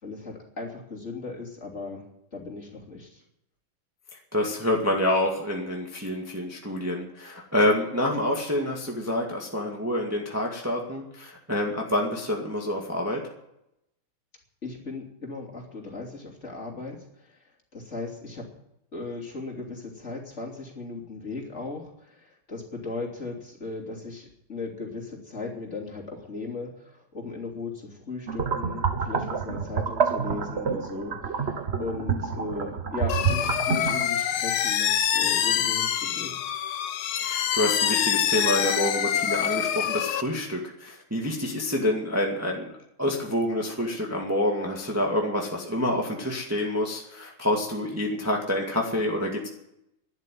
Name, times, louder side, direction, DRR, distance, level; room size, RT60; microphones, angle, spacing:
voice 1, 0.0-2.0 2.3-3.2 14.6-17.4 17.7-18.5 18.9-31.5 31.8-36.4, left 3 dB, 30° left, -2 dB, 3.4 m, -37 dB
voice 2, 4.3-13.3 37.2-42.7 43.0-49.5, left 1 dB, 5° right, 0 dB, 1.9 m, -27 dB
sound 1, 28.3-34.0, right 6 dB, 40° right, 1.0 m, -28 dB
sound 2, 33.1-40.2, left 10 dB, 75° left, 1.8 m, -25 dB
12.5 x 11.5 x 9.4 m, 0.81 s
omnidirectional pair, 2.4 m